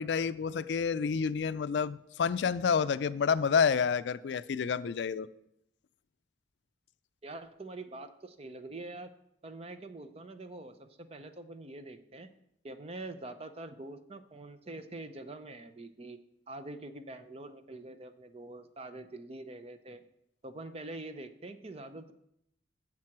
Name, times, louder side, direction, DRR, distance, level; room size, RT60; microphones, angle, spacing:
voice 1, 0.0-5.3, left 6 dB, 75° left, 0.4 m, -29 dB
voice 2, 7.2-9.1 9.4-12.3 12.6-16.2 16.5-20.0 20.4-22.1, right 2 dB, 35° right, 0.6 m, -45 dB
7.5 x 7.4 x 6.0 m
head